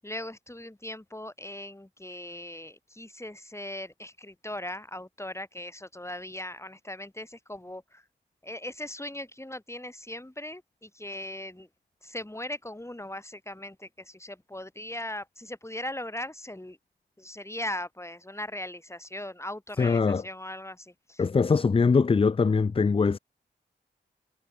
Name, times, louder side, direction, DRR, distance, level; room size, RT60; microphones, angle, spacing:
voice 1, 0.0-8.0 8.4-11.7 12.0-16.8 17.2-21.2, left 1 dB, 15° left, 7.5 m, -39 dB
voice 2, 19.8-20.2 21.2-23.2, left 4 dB, 30° left, 0.5 m, -22 dB
cardioid pair, 45°, 18 cm